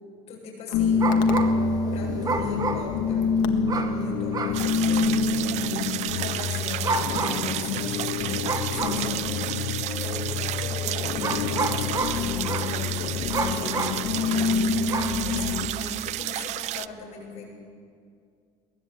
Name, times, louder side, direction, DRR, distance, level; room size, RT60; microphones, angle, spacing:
voice 1, 0.3-1.1 1.9-3.3 3.8-5.6 6.1-9.6 10.0-10.3 10.6-17.4, left 3 dB, 50° left, -2 dB, 7.8 m, -39 dB
sound 1, 0.7-15.7, left 5 dB, 85° left, 1.7 m, -27 dB
sound 2, 0.7-1.7 2.2-3.2 3.7-4.0 4.3-4.7 5.3-5.4 6.7-7.5 8.4-9.1 9.9-10.0 11.2-12.7 13.3-14.1 14.9-15.2, right 4 dB, 25° right, 1.7 m, -29 dB
sound 3, 4.5-16.9, right 15 dB, 55° right, 0.5 m, -32 dB
22.0 x 18.5 x 8.5 m, 2.2 s
cardioid pair, 140°, 14 cm